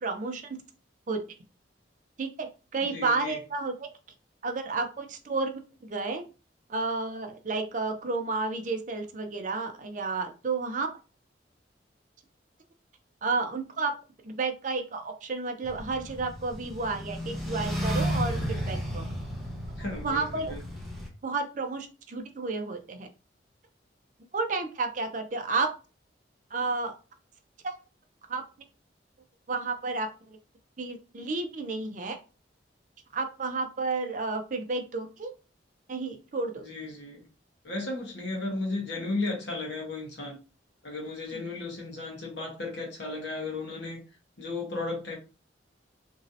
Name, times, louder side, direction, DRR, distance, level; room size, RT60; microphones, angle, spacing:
voice 1, 0.0-0.4 1.1-1.2 2.2-2.5 2.7-3.9 4.4-6.2 6.7-10.9 13.2-13.9 14.2-19.0 20.0-20.6 21.2-23.1 24.3-25.7 26.5-26.9 27.6-27.8 28.3-28.4 29.5-30.1 30.8-32.2 33.1-35.3 35.9-36.6, right 3 dB, 45° right, 0.5 m, -31 dB
voice 2, 2.9-3.4 19.8-20.6 36.6-37.2 37.6-40.4 40.8-44.0 44.4-45.1, left 2 dB, 75° left, 1.2 m, -34 dB
sound 1, 15.6-21.1, equal, ahead, 0.7 m, -33 dB
3.0 x 2.7 x 2.6 m
head